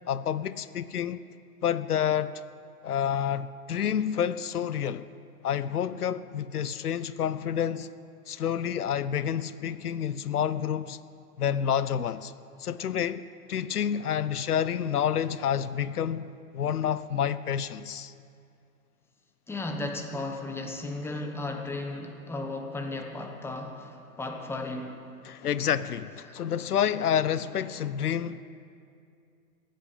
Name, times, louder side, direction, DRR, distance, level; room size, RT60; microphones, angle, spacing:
voice 1, 0.1-1.2 1.6-2.4 2.8-5.1 5.4-7.9 8.3-11.0 11.4-12.3 12.6-16.2 16.5-18.1 25.2-28.4, left 9 dB, 85° left, 0.6 m, -29 dB
voice 2, 19.5-25.0 26.3-26.4, left 2 dB, 5° left, 1.1 m, -35 dB
15.0 x 7.6 x 9.0 m
figure-of-eight pair, 110°, 45 cm